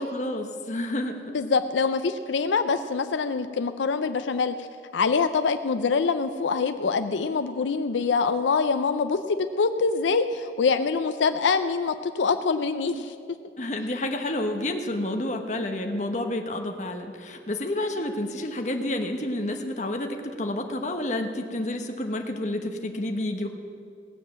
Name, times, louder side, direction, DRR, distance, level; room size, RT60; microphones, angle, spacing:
voice 1, 0.0-1.3 13.6-23.5, left 1 dB, 40° left, 4 dB, 1.1 m, -29 dB
voice 2, 1.3-4.7 4.9-13.1, left 5 dB, 85° left, 9 dB, 0.5 m, -25 dB
18.0 x 7.5 x 7.5 m, 2.4 s
head